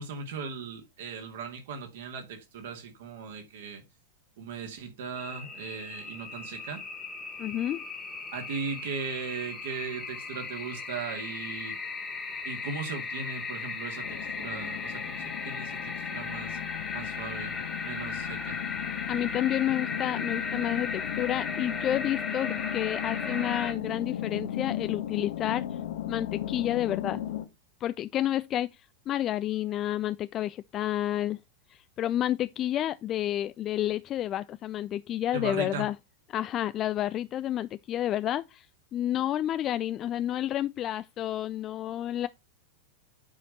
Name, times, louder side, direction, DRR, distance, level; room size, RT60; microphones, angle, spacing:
voice 1, 0.0-3.8 4.4-6.8 8.3-11.7 12.4-16.6 16.9-17.6 17.8-18.6 35.3-35.8, right 5 dB, 55° right, 2.4 m, -38 dB
sound 1, 5.1-23.7, left 4 dB, 15° left, 1.7 m, -37 dB
voice 2, 7.4-7.9 19.1-25.8 26.1-27.2 27.8-31.4 31.7-35.9 36.3-38.7 38.9-42.3, left 12 dB, 30° left, 0.3 m, -30 dB
sound 2, 14.0-27.5, left 11 dB, 55° left, 0.9 m, -36 dB
8.8 x 5.0 x 4.1 m
figure-of-eight pair, 90°, 0 cm